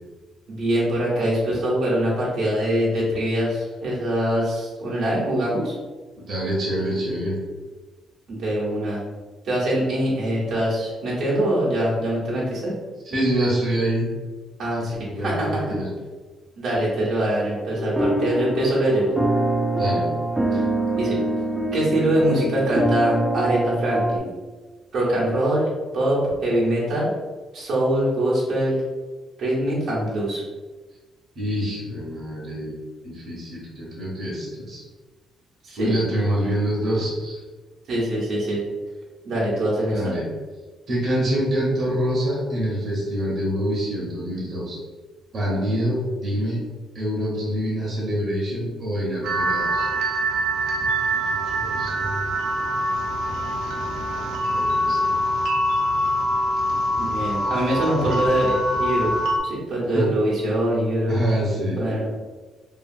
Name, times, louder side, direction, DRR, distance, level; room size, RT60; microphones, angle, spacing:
voice 1, 0.5-5.7 8.3-9.0 9.4-12.7 14.6-15.7 16.6-19.1 20.5-20.6 21.0-21.2 21.7-24.3 24.9-25.7 25.9-27.1 27.5-28.8 29.4-30.4 35.6-36.0 37.9-38.6 39.2-40.1 57.0-59.1 59.4-61.2 61.7-62.1, right 1 dB, 70° right, -7 dB, 1.0 m, -23 dB
voice 2, 6.2-7.4 13.0-14.1 15.0-15.9 19.7-20.1 31.4-32.8 33.0-34.8 35.8-37.4 39.9-40.3 40.9-44.8 45.3-46.6 46.9-49.9 51.1-52.3 54.5-55.0 59.9-60.1 61.1-61.8, equal, 50° right, -6 dB, 1.0 m, -26 dB
sound 1, 17.8-24.2, right 1 dB, 15° right, 0.4 m, -24 dB
sound 2, 49.2-59.4, equal, 85° right, 0.3 m, -24 dB
2.7 x 2.5 x 2.6 m, 1.3 s
cardioid pair, 90°, 0 cm